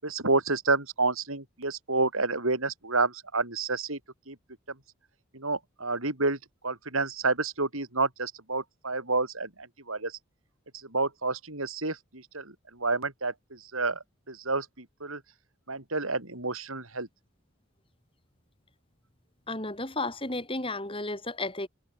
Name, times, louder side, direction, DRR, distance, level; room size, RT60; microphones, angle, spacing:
voice 1, 0.0-4.0 4.3-4.4 5.3-6.4 6.6-9.5 9.9-10.1 10.9-12.5 12.8-13.3 13.7-15.2 15.7-17.1, right 3 dB, 85° right, 6.3 m, -29 dB
voice 2, 19.5-21.7, left 2 dB, 25° left, 6.0 m, -33 dB
head